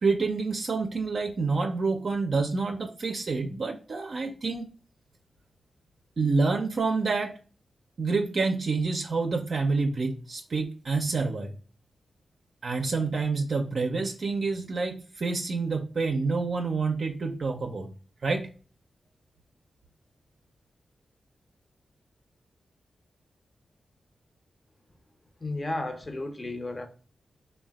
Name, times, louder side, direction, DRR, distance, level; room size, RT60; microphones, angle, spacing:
voice 1, 0.0-4.7 6.2-7.3 8.0-11.5 12.6-17.9 18.2-18.5, right 4 dB, 65° right, 0.4 m, -28 dB
voice 2, 25.4-26.9, left 2 dB, 35° left, 0.7 m, -33 dB
3.2 x 2.1 x 2.2 m
supercardioid pair, 40°, 0 cm